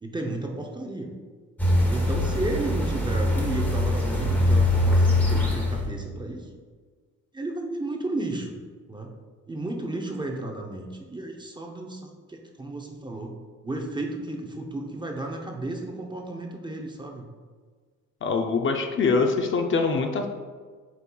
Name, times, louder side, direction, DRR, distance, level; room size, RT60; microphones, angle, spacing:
voice 1, 0.0-1.1 1.9-6.5 7.3-8.6 8.9-9.1 9.5-13.4 13.6-17.3, right 2 dB, 15° right, 1 dB, 0.5 m, -33 dB
sound 1, 1.6-5.9, left 1 dB, 5° left, 0.9 m, -22 dB
voice 2, 18.2-20.3, left 4 dB, 40° left, 4 dB, 0.5 m, -24 dB
8.1 x 5.3 x 2.3 m, 1.5 s
wide cardioid pair, 170°, 31 cm